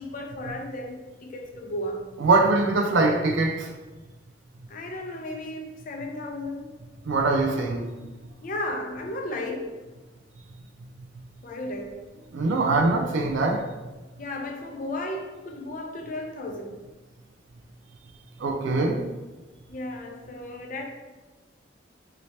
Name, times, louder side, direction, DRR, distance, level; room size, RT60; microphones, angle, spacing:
voice 1, 0.0-2.1 4.7-6.8 8.4-9.8 11.4-12.0 14.2-16.8 19.7-20.9, left 1 dB, 45° left, 0.5 m, -34 dB
voice 2, 2.2-3.7 7.1-7.9 12.3-13.7 18.4-19.1, right 3 dB, 75° right, 0.3 m, -22 dB
3.0 x 2.8 x 2.8 m
head